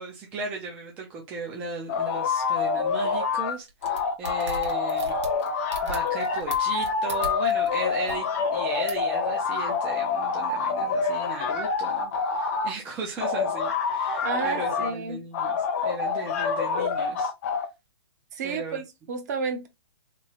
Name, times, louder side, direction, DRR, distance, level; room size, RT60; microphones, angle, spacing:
voice 1, 0.0-5.2 5.5-17.3 18.4-18.8, right 3 dB, 10° right, 0.3 m, -37 dB
sound 1, 1.9-3.5 3.8-12.7 13.2-14.9 15.3-17.7, left 5 dB, 35° left, 0.6 m, -27 dB
sound 2, 3.7-7.7 8.0-8.1 8.9-9.1, right 3 dB, 85° right, 1.2 m, -38 dB
voice 2, 14.2-15.3 18.3-19.7, right 5 dB, 40° right, 0.8 m, -31 dB
2.9 x 2.7 x 4.3 m
hypercardioid pair, 165°, 14 cm